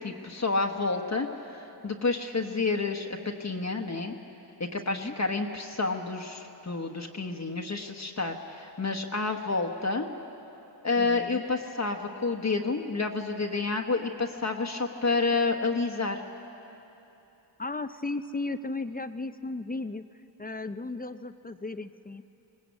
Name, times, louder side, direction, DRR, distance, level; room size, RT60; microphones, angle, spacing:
voice 1, 0.0-3.1 3.4-4.1 4.7-10.1 10.8-16.2, left 3 dB, 35° left, 3 dB, 1.2 m, -29 dB
voice 2, 11.0-11.4 17.6-20.0 20.4-22.2, left 3 dB, 20° left, 11 dB, 0.6 m, -35 dB
19.5 x 19.0 x 8.4 m, 3.0 s
cardioid pair, 65°, 45 cm